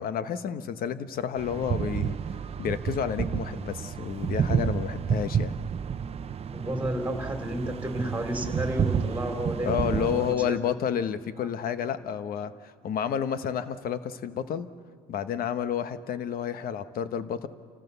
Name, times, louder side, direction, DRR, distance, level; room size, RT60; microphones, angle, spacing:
voice 1, 0.0-2.2 2.6-5.5 9.6-14.7 15.1-17.5, left 8 dB, 60° left, 12 dB, 1.2 m, -30 dB
sound 1, 1.4-10.3, right 7 dB, 35° right, 0.7 m, -30 dB
voice 2, 6.5-10.6, right 1 dB, 10° right, 4 dB, 3.2 m, -32 dB
29.5 x 15.0 x 6.9 m, 2.3 s
cardioid pair, 110°, 17 cm